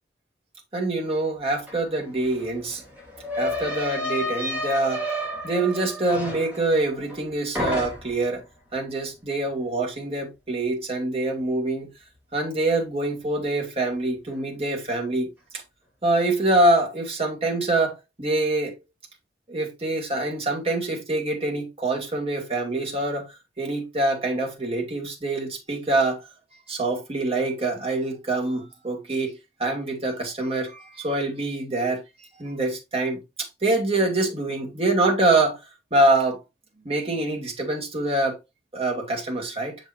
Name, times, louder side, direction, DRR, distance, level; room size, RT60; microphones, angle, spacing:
voice 1, 0.7-2.8 3.4-5.0 5.4-8.4 8.7-11.9 12.3-15.3 16.0-18.8 19.5-23.3 23.6-26.2 26.7-32.0 32.4-35.6 35.9-36.4 36.8-38.4 38.7-39.8, right 2 dB, 35° right, 2.3 m, -25 dB
sound 1, 1.7-1.8 2.0-7.3 7.5-8.3, left 1 dB, 10° right, 3.0 m, -31 dB
6.8 x 6.7 x 2.7 m
head